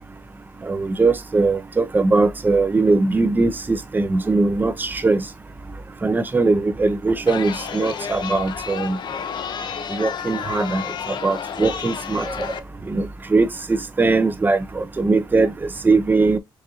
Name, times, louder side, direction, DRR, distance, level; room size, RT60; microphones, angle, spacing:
voice 1, 0.6-5.2 6.0-9.0 9.9-10.8 11.2-12.6 12.9-16.4, right 3 dB, 20° right, 0.5 m, -20 dB
Chatter, 7.3-12.6, left 7 dB, 60° left, 0.5 m, -31 dB
4.6 x 2.6 x 2.9 m
cardioid pair, 110°, 9 cm